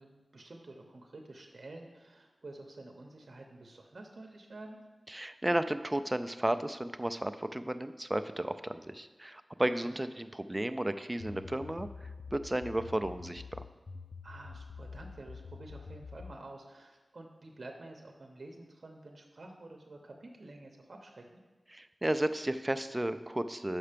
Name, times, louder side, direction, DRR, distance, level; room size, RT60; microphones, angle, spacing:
voice 1, 0.0-4.8 14.2-21.4, right 2 dB, 65° right, 3 dB, 0.7 m, -49 dB
voice 2, 5.1-11.9 12.3-13.6 21.7-23.8, right 1 dB, 20° right, 10 dB, 0.3 m, -33 dB
sound 1, 11.2-16.4, left 4 dB, 65° left, 0.4 m, -47 dB
5.9 x 5.5 x 5.0 m, 1.2 s
wide cardioid pair, 75°, 0 cm